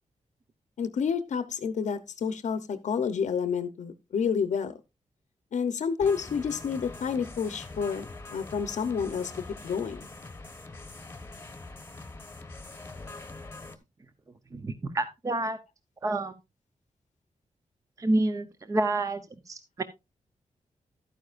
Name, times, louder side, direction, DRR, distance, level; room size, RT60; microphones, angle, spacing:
voice 1, 0.8-4.7 5.5-8.0 8.3-9.3 9.6-10.1, left 6 dB, 70° left, 12 dB, 0.8 m, -29 dB
sound 1, 6.0-13.8, left 3 dB, 20° left, 1.1 m, -43 dB
voice 2, 14.5-15.6 16.0-16.3 18.0-19.8, right 2 dB, 25° right, 10 dB, 0.7 m, -28 dB
12.0 x 9.5 x 2.5 m, 0.24 s
wide cardioid pair, 145°, 13 cm